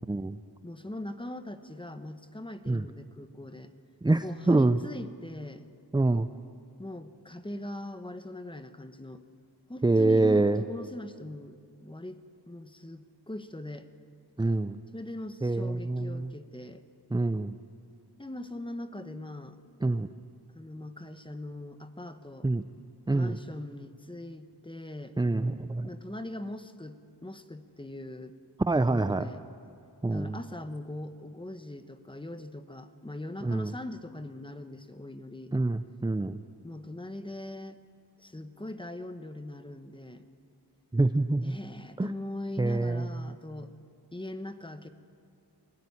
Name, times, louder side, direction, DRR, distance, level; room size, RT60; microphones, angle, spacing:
voice 1, 0.1-0.4 2.7-2.8 4.0-4.8 5.9-6.3 9.8-10.6 14.4-14.8 15.4-16.3 17.1-17.6 19.8-20.1 22.4-22.6 23.1-23.4 25.2-25.9 28.7-29.2 30.0-30.4 33.4-33.7 35.5-36.4 40.9-41.6 42.0-42.1 42.6-43.1, right 2 dB, 10° right, 11 dB, 0.5 m, -26 dB
voice 2, 0.6-3.7 4.2-5.6 6.8-9.2 9.7-13.9 14.9-16.8 18.2-19.6 20.5-22.5 23.1-25.1 25.8-28.3 28.7-29.4 30.1-35.5 36.6-37.8 38.2-40.3 41.4-43.7 44.1-44.9, left 1 dB, 10° left, 9 dB, 1.1 m, -41 dB
21.0 x 16.0 x 9.8 m, 2.4 s
wide cardioid pair, 110°, 40 cm